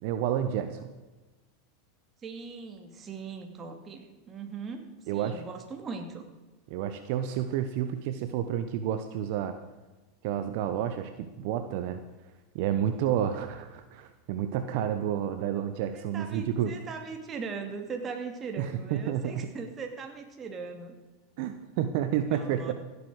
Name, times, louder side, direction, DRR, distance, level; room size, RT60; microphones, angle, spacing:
voice 1, 0.0-0.9 5.1-5.4 6.7-9.6 10.2-12.0 12.5-16.8 18.6-19.3 21.4-22.7, right 10 dB, 60° right, 9 dB, 1.0 m, -30 dB
voice 2, 2.2-6.2 15.9-21.0 22.3-22.7, right 5 dB, 30° right, 4 dB, 2.5 m, -40 dB
16.0 x 8.3 x 6.4 m, 1.2 s
hypercardioid pair, 105°, 0 cm